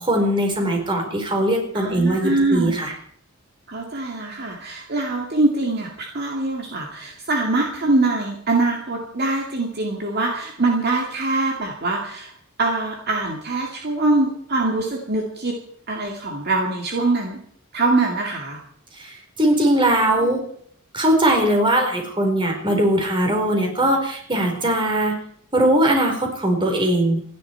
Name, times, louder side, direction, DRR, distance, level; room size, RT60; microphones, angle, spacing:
voice 1, 0.0-2.9 19.0-20.4 20.9-25.1 25.5-27.3, right 1 dB, 25° right, 2 dB, 4.2 m, -20 dB
voice 2, 1.7-2.8 3.7-12.3 12.6-15.6 15.9-17.4 17.7-18.6, right 2 dB, 50° right, 1 dB, 2.2 m, -23 dB
27.5 x 11.0 x 4.6 m, 0.64 s
head